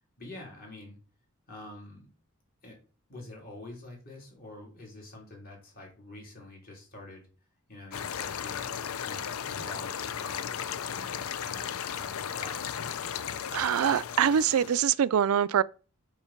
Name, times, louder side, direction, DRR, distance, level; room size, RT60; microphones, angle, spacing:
voice 1, 0.2-1.0 1.5-2.1 2.6-2.8 3.1-7.3 7.7-12.9, left 1 dB, 45° left, 3.6 m, -47 dB
sound 1, 7.9-14.9, left 8 dB, 80° left, 0.5 m, -35 dB
voice 2, 13.5-15.6, right 8 dB, 80° right, 0.4 m, -24 dB
7.2 x 5.8 x 4.4 m
head